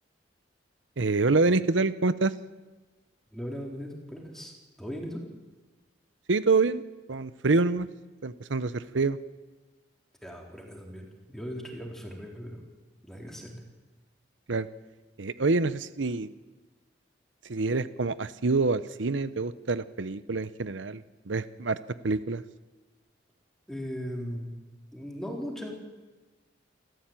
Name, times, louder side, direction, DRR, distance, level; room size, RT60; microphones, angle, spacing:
voice 1, 1.0-2.3 6.3-6.8 7.1-7.9 8.2-9.2 14.5-14.7 15.2-16.3 17.5-21.8 22.0-22.4, right 3 dB, 80° right, 14 dB, 0.8 m, -26 dB
voice 2, 3.3-4.5 4.8-5.2 10.2-12.6 13.0-13.6 23.7-24.5 24.9-25.9, equal, ahead, 0 dB, 4.1 m, -38 dB
28.0 x 14.0 x 9.1 m, 1.2 s
head